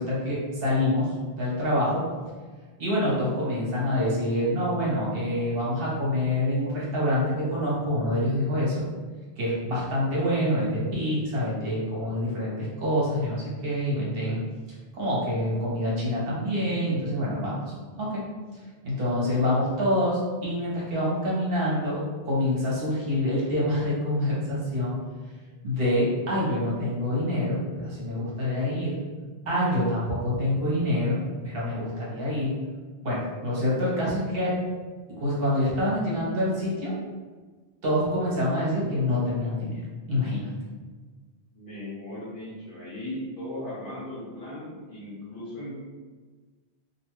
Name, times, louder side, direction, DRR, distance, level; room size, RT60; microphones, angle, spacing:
voice 1, 0.0-2.0 2.8-8.8 9.4-14.4 14.9-18.2 18.8-25.0 25.6-29.0 29.5-32.5 33.0-34.5 35.1-36.9 37.8-39.8 40.1-40.5, left 1 dB, 60° right, -6 dB, 1.0 m, -26 dB
voice 2, 41.5-45.8, left 1 dB, 55° left, -9 dB, 1.3 m, -37 dB
2.6 x 2.2 x 3.0 m, 1.4 s
omnidirectional pair, 1.1 m